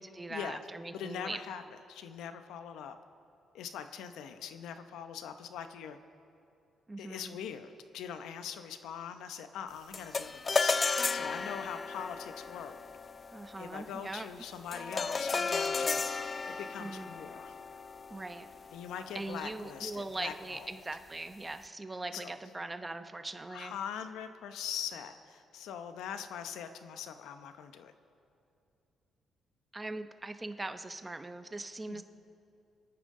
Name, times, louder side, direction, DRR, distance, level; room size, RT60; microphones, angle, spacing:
voice 1, 0.0-1.4 6.9-7.4 13.3-14.3 16.8-17.1 18.1-18.5 19.1-23.7 29.7-32.0, right 2 dB, 20° right, 9 dB, 0.8 m, -41 dB
voice 2, 0.9-1.6 1.9-3.0 3.5-6.0 7.0-10.7 11.1-12.8 13.6-16.0 16.5-17.5 18.7-20.7 22.1-22.3 23.5-27.9 31.9-32.0, left 8 dB, 85° left, 9 dB, 0.8 m, -42 dB
sound 1, 9.9-19.4, left 4 dB, 35° left, 0.4 m, -34 dB
27.0 x 9.3 x 3.7 m, 2.6 s
cardioid pair, 90°, 0 cm